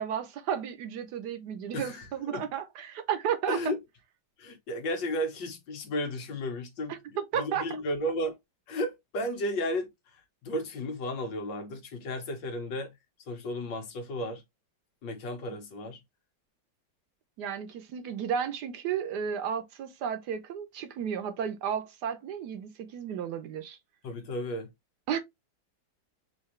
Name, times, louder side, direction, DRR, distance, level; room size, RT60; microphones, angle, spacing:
voice 1, 0.0-3.6 6.9-7.6 17.4-23.8 25.1-25.2, right 8 dB, 70° right, 1.2 m, -33 dB
voice 2, 1.7-2.5 3.5-3.8 4.4-8.4 8.7-12.9 13.3-14.4 15.0-16.0 24.0-24.7, left 1 dB, 80° left, 1.8 m, -34 dB
5.6 x 2.7 x 3.0 m
omnidirectional pair, 2.0 m